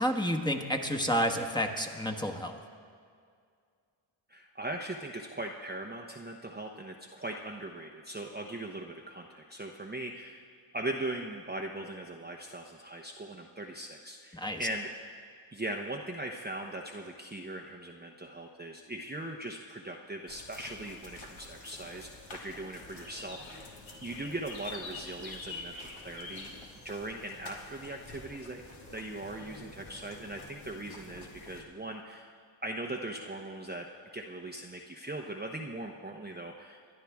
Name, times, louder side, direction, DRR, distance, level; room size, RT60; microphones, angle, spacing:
voice 1, 0.0-2.6 14.3-14.6, equal, 10° left, 3 dB, 1.3 m, -30 dB
voice 2, 4.3-10.5 10.7-14.9 15.5-26.5 26.8-28.6 28.9-32.3 32.6-33.9 34.1-36.8, right 1 dB, 20° right, 0 dB, 0.9 m, -40 dB
sound 1, 20.3-31.6, left 3 dB, 65° left, 1.9 m, -47 dB
23.5 x 11.0 x 3.6 m, 2.2 s
cardioid pair, 65°, 50 cm